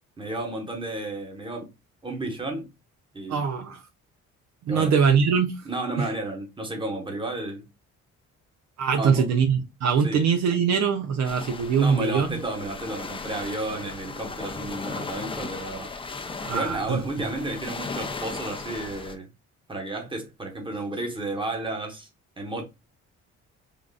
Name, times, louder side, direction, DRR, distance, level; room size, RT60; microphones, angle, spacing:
voice 1, 0.2-1.7 2.0-2.7 3.1-3.5 4.7-4.9 5.6-7.6 9.0-9.3 10.0-10.3 11.8-15.9 16.5-19.3 19.7-22.1 22.4-22.6, right 2 dB, 15° right, 1.1 m, -32 dB
voice 2, 3.3-3.8 4.6-5.5 6.0-6.1 8.8-12.4 16.4-17.0, right 6 dB, 65° right, 0.5 m, -22 dB
sound 1, 11.2-19.2, left 4 dB, 20° left, 0.5 m, -36 dB
3.7 x 2.4 x 2.3 m
cardioid pair, 90°, 30 cm